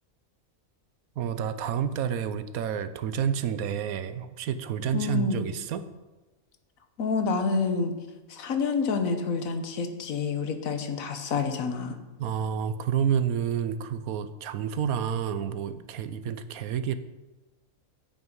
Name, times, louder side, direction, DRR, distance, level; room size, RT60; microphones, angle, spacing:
voice 1, 1.2-5.8 12.2-17.0, right 8 dB, 80° right, 12 dB, 1.1 m, -29 dB
voice 2, 4.9-5.4 7.0-7.9 8.3-11.9, left 5 dB, 70° left, 7 dB, 1.4 m, -28 dB
8.8 x 8.8 x 5.4 m, 1.1 s
omnidirectional pair, 1.5 m